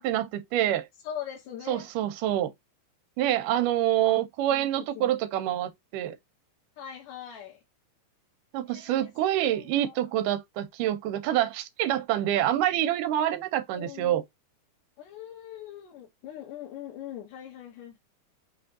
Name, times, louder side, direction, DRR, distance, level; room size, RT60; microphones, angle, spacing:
voice 1, 0.0-0.9 1.7-2.5 3.2-6.2 8.5-14.2, right 12 dB, 85° right, 2.3 m, -26 dB
voice 2, 1.0-1.9 4.0-4.2 4.5-5.2 6.8-7.6 8.7-9.1 9.5-10.0 13.7-14.2 15.0-18.0, left 10 dB, 90° left, 2.6 m, -41 dB
5.6 x 3.4 x 2.6 m
omnidirectional pair, 3.7 m